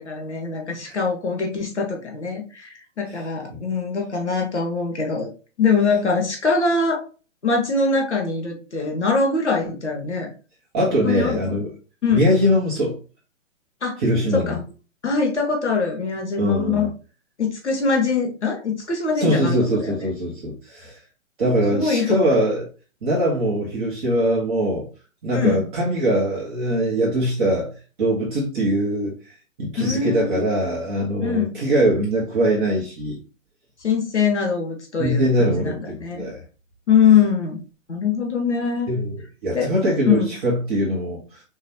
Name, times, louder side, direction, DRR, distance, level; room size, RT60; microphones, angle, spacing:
voice 1, 0.0-5.3 5.6-7.1 7.4-10.3 11.0-11.6 12.0-12.2 13.8-14.0 14.5-14.6 15.0-16.9 17.4-19.9 21.7-22.3 25.3-25.7 29.8-30.4 31.2-31.6 33.8-36.2 36.9-37.6 37.9-38.9 39.5-39.7 40.1-40.3, left 5 dB, ahead, 0.3 m, -22 dB
voice 2, 10.7-11.7 12.1-13.0 14.0-14.6 16.4-16.9 19.2-21.0 21.4-22.7 23.0-24.9 25.2-27.7 28.0-29.2 29.6-33.2 35.0-36.4 38.9-41.4, equal, 40° right, 1.8 m, -22 dB
5.4 x 3.2 x 2.9 m
hypercardioid pair, 160°, 38 cm